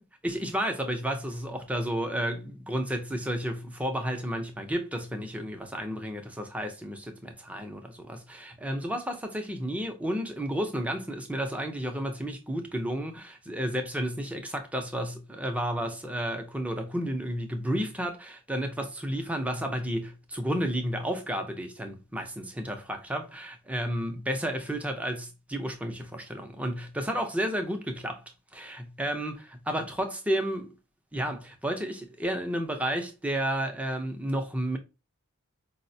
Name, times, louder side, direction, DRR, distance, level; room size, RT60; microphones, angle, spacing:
voice 1, 0.2-28.2 28.5-30.7 31.1-34.8, equal, 5° right, 0.4 m, -32 dB
4.7 x 2.0 x 2.6 m
head